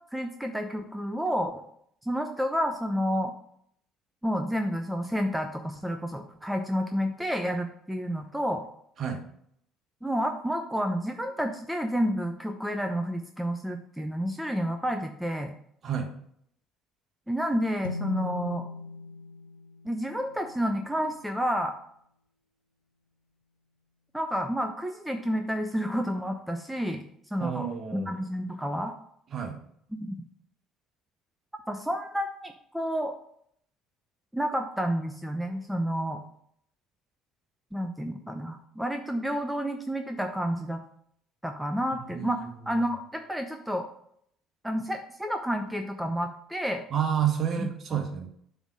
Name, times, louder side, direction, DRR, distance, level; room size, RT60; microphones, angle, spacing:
voice 1, 0.1-1.6 2.0-3.3 4.2-8.6 10.0-15.5 17.3-18.7 19.8-21.7 24.1-27.0 27.3-28.9 30.0-30.2 31.7-33.1 34.3-36.2 37.7-40.8 41.4-43.9 44.6-46.8 47.6-48.0, equal, 5° right, 5 dB, 0.8 m, -30 dB
sound 1, 17.8-21.4, left 3 dB, 85° left, 0.3 m, -40 dB
voice 2, 27.4-28.1 29.3-29.6 42.1-42.4 42.7-42.8 46.9-48.3, right 8 dB, 45° right, 4 dB, 1.4 m, -29 dB
7.2 x 3.6 x 6.1 m, 0.67 s
figure-of-eight pair, 55°, 0 cm